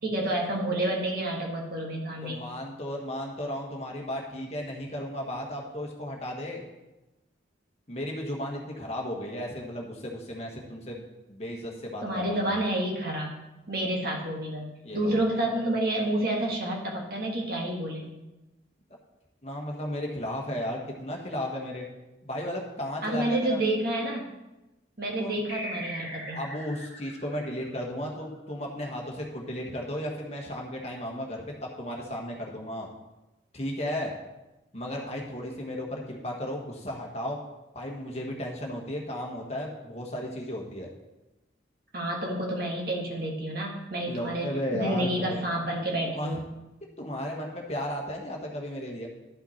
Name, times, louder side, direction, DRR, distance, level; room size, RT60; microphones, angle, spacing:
voice 1, 0.0-2.5 12.0-13.3 13.7-14.7 14.9-18.1 23.0-24.3 25.0-26.4 41.9-46.4, right 1 dB, 50° right, -1 dB, 1.8 m, -29 dB
voice 2, 2.2-6.6 7.9-12.5 14.8-15.1 19.4-21.9 22.2-23.6 25.2-25.4 26.3-32.9 33.5-34.1 34.7-37.4 37.7-40.9 44.1-45.4 46.0-46.4 47.0-49.1, left 1 dB, 35° left, 0 dB, 1.4 m, -34 dB
sound 1, 25.5-28.5, equal, 15° right, 3.3 m, -40 dB
12.0 x 5.7 x 4.3 m, 1.0 s
head